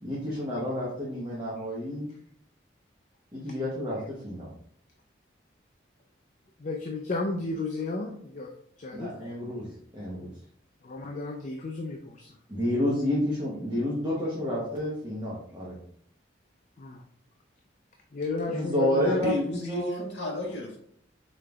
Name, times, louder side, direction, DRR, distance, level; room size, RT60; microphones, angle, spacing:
voice 1, 0.0-2.1 3.3-4.5 8.9-9.7 9.9-10.3 12.5-15.8 18.5-19.3 19.7-20.0, left 1 dB, 25° right, -7 dB, 1.0 m, -29 dB
voice 2, 6.6-8.5 8.8-9.2 10.8-12.4 16.8-17.0 18.1-19.2, left 3 dB, 40° left, 3 dB, 0.4 m, -33 dB
voice 3, 19.2-20.8, left 2 dB, 70° left, -1 dB, 1.6 m, -32 dB
5.1 x 3.7 x 2.3 m, 0.65 s
head